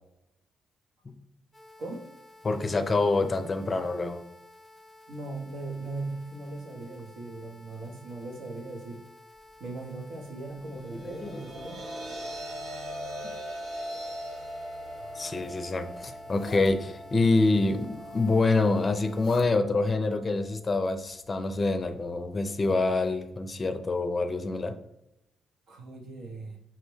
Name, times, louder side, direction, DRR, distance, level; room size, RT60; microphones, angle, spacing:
sound 1, 1.5-19.3, left 2 dB, 5° left, 0.9 m, -53 dB
voice 1, 2.4-4.2 10.7-11.4 15.1-24.8, left 3 dB, 30° left, 7 dB, 0.5 m, -26 dB
voice 2, 5.1-9.0 9.6-11.8 25.7-26.6, right 2 dB, 70° right, 2 dB, 0.8 m, -39 dB
sound 2, 10.8-23.1, equal, 85° right, 1.1 m, -42 dB
Zipper (clothing), 14.8-15.6 16.2-16.7 17.8-18.5 18.9-19.5, left 5 dB, 85° left, 0.4 m, -48 dB
5.6 x 2.1 x 3.2 m, 0.84 s
cardioid pair, 90°, 0 cm